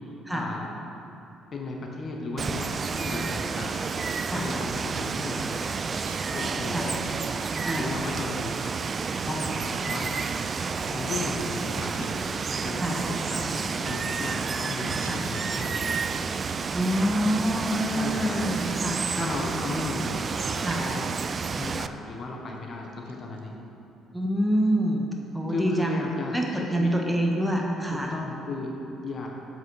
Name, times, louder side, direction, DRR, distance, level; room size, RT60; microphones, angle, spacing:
voice 1, 0.3-0.7 1.5-3.9 4.3-5.7 6.3-7.0 7.8-8.6 9.1-10.2 10.9-12.3 12.6-15.9 17.9-18.5 19.1-20.2 20.5-21.1 21.6-23.6 25.5-26.9 27.9-29.3, left 2 dB, 50° left, 0 dB, 1.1 m, -35 dB
Water, 2.4-21.9, right 5 dB, 40° right, 0.3 m, -30 dB
sound 1, 6.0-13.1 13.4-13.7 13.9-14.5 14.9-21.3 22.0-22.1 22.4-22.6 22.8-23.4, right 4 dB, 90° right, 0.6 m, -48 dB
voice 2, 16.7-19.3 20.6-20.8 24.1-25.1 25.3-26.0 26.3-28.1, equal, 5° right, 0 dB, 1.4 m, -26 dB
7.8 x 7.5 x 4.1 m, 2.8 s
hypercardioid pair, 55°, 0 cm